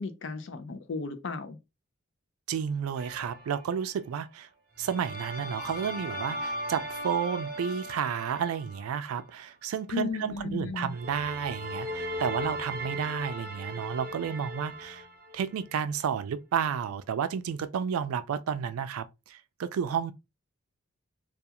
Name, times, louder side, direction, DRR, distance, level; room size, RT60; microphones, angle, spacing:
voice 1, 0.0-1.6 9.9-10.9, left 4 dB, 60° left, 0.4 m, -34 dB
voice 2, 2.5-4.5 4.8-15.1 15.3-20.1, right 7 dB, 85° right, 0.3 m, -31 dB
sound 1, 3.0-3.8 4.8-9.2 10.9-15.7, equal, 45° right, 0.7 m, -38 dB
2.3 x 2.3 x 2.8 m
head